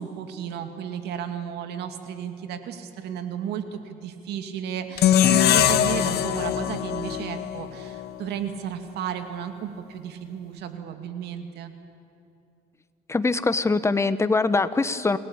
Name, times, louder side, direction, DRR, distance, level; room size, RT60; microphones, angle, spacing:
voice 1, 0.0-11.7, right 8 dB, 80° right, 7 dB, 2.4 m, -34 dB
sound 1, 5.0-8.2, left 10 dB, 70° left, 1.3 m, -22 dB
voice 2, 13.1-15.2, left 3 dB, 15° left, 13 dB, 1.1 m, -23 dB
28.5 x 17.5 x 8.8 m, 2.8 s
cardioid pair, 110°, 17 cm